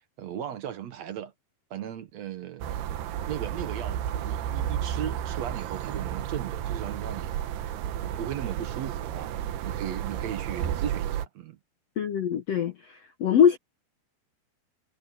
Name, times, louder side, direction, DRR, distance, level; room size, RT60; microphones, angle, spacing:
voice 1, 0.2-1.3 1.7-2.8 3.2-7.3 8.0-11.6, right 10 dB, 65° right, 1.8 m, -37 dB
sound 1, 2.6-11.3, right 10 dB, 90° right, 3.2 m, -32 dB
voice 2, 12.0-13.6, left 8 dB, 80° left, 1.4 m, -23 dB
omnidirectional pair, 4.4 m